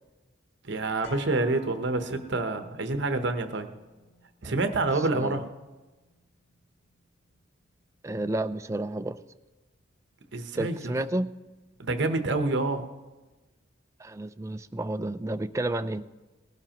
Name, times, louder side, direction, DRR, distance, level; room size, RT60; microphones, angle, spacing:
voice 1, 0.6-3.7 4.4-5.4 10.3-10.9 11.8-12.9, right 2 dB, 65° right, 7 dB, 1.0 m, -27 dB
sound 1, 1.0-9.1 9.4-9.5, left 3 dB, 80° left, 2.6 m, -54 dB
voice 2, 5.0-5.4 8.0-9.2 10.6-11.3 14.0-16.1, right 1 dB, 15° right, 10 dB, 0.3 m, -31 dB
18.5 x 12.0 x 3.0 m, 1.2 s
head